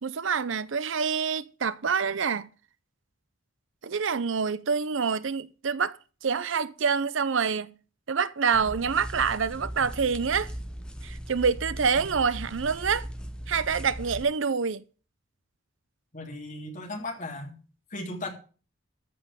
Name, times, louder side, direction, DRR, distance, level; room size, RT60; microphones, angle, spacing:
voice 1, 0.0-2.5 3.8-7.7 8.1-10.5 11.0-13.1 13.5-14.8, right 6 dB, 70° right, 0.6 m, -27 dB
sound 1, 8.5-14.3, equal, 5° left, 0.8 m, -39 dB
voice 2, 16.1-17.6 17.9-18.3, left 2 dB, 40° left, 3.3 m, -36 dB
14.0 x 5.4 x 7.6 m
head